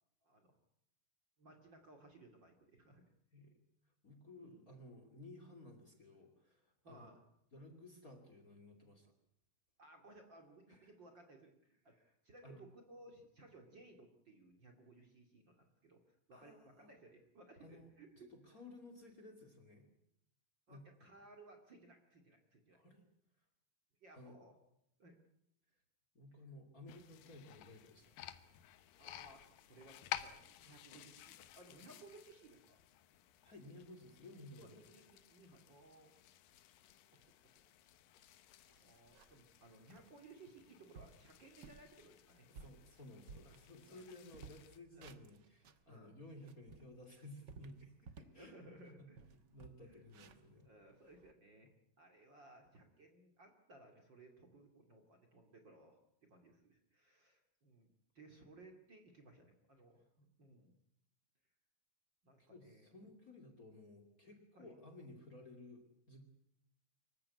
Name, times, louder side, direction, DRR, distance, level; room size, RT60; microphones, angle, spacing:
voice 1, 0.2-0.6 1.4-3.0 4.4-4.7 6.8-7.2 9.8-12.0 12.2-18.6 20.7-22.8 24.0-24.6 25.0-25.2 28.5-28.6 29.0-32.8 33.6-33.7 34.6-36.3 37.1-37.5 38.8-42.5 43.4-43.6 43.9-44.1 44.9-45.1 45.9-46.2 48.4-49.2 49.8-50.0 50.6-57.9 58.1-60.8 62.2-62.9 64.5-64.7, right 2 dB, 35° right, 4 dB, 2.7 m, -61 dB
voice 2, 4.0-7.1 7.5-9.1 10.7-10.9 11.9-12.1 12.4-12.6 16.3-16.9 17.6-17.9 18.2-19.9 20.7-20.8 22.7-23.1 24.1-24.4 26.1-28.1 33.4-35.0 42.5-48.7 49.0-50.7 62.4-66.2, left 1 dB, 25° left, 6 dB, 2.8 m, -56 dB
sound 1, 26.9-44.8, left 13 dB, 85° left, 2.8 m, -54 dB
sound 2, 38.2-38.3 38.7-39.5 39.9-40.1 40.6-40.7 40.9-41.2 41.6-41.9 42.3-44.0 44.3-45.9 46.3-48.4 48.8-48.9 49.2-51.3, right 5 dB, 80° right, 0.9 m, -57 dB
25.0 x 14.5 x 9.5 m, 0.77 s
omnidirectional pair, 3.9 m